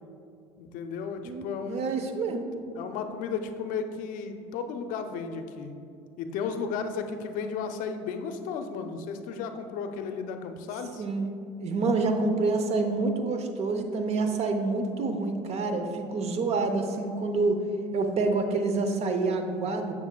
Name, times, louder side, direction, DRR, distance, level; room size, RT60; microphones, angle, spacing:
voice 1, 0.6-2.0 2.7-5.7 6.2-11.0, left 5 dB, 60° left, 7 dB, 0.5 m, -34 dB
voice 2, 1.2-2.5 11.0-11.3 11.6-17.6 17.9-19.9, right 3 dB, 45° right, 6 dB, 0.7 m, -27 dB
7.0 x 6.5 x 2.2 m, 2.5 s
supercardioid pair, 85°, 15 cm